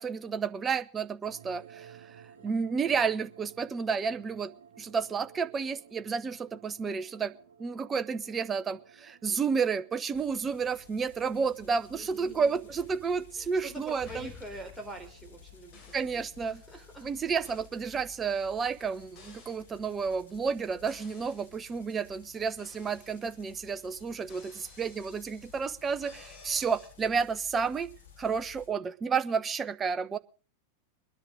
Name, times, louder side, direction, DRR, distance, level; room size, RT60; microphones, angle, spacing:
voice 1, 0.0-2.2 2.4-4.5 4.8-7.3 7.6-14.3 15.9-16.6 17.0-27.9 28.2-30.2, right 5 dB, 20° right, 12 dB, 0.8 m, -31 dB
sound 1, 1.2-17.1, right 8 dB, 60° right, 1.6 m, -57 dB
sound 2, 10.1-28.7, left 8 dB, 60° left, 5.1 m, -55 dB
voice 2, 11.8-12.6 13.3-17.1, right 1 dB, ahead, 0 dB, 3.8 m, -46 dB
sound 3, 12.7-13.6 14.0-15.3 15.7-16.2 17.4-17.7 19.1-19.7 20.9-21.6 22.6-23.7 24.3-26.9, left 4 dB, 35° left, 3.8 m, -54 dB
22.5 x 10.5 x 3.8 m, 0.39 s
figure-of-eight pair, 90°, 0 cm